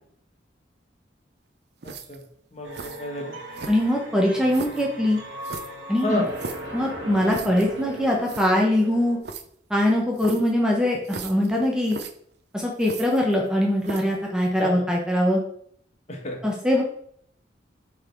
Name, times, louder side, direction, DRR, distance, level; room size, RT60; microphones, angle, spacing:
voice 1, 1.8-2.2 2.5-3.3 6.0-6.3 14.6-14.8 16.1-16.4, left 1 dB, 35° left, 1 dB, 1.3 m, -30 dB
sound 1, 1.8-2.3 2.7-3.0 3.5-4.0 4.5-4.9 5.4-6.7 7.3-7.7 8.0-8.5 9.2-9.4 10.2-10.5 11.0-11.5 11.8-12.1 12.8-13.5 13.8-14.2, right 4 dB, 60° right, 0.7 m, -37 dB
sound 2, 2.6-9.2, right 1 dB, 85° right, 1.6 m, -38 dB
voice 2, 3.7-5.2 5.9-6.2 6.7-9.2 9.7-12.0 12.5-15.4 16.4-16.8, left 1 dB, 5° right, -1 dB, 1.0 m, -22 dB
6.3 x 4.1 x 4.5 m, 0.63 s
head